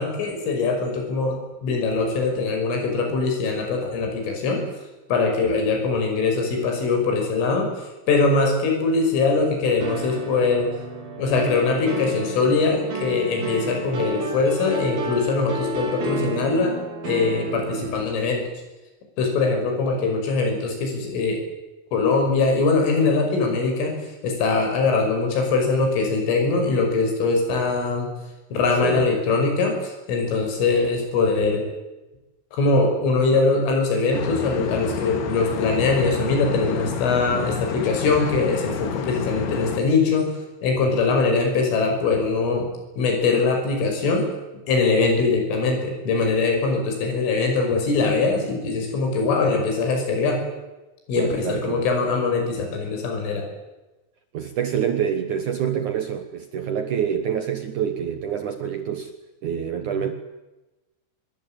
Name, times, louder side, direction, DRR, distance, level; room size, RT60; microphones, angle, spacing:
voice 1, 0.0-4.6 5.1-7.7 8.1-10.7 11.2-16.8 17.0-18.4 19.2-21.4 21.9-24.0 24.2-28.1 28.5-31.6 32.5-40.3 40.6-42.7 42.9-44.3 44.7-50.4 51.1-53.4 59.9-60.0, left 4 dB, 80° left, 2 dB, 8.3 m, -22 dB
sound 1, 9.8-18.1, right 1 dB, 50° right, 5.6 m, -31 dB
voice 2, 28.8-29.2 51.2-51.9 54.3-59.1 59.4-60.2, right 8 dB, 70° right, 7 dB, 1.8 m, -26 dB
sound 2, 34.1-39.8, left 8 dB, 65° left, 3.8 m, -30 dB
26.0 x 22.5 x 9.0 m, 1.1 s
omnidirectional pair, 5.6 m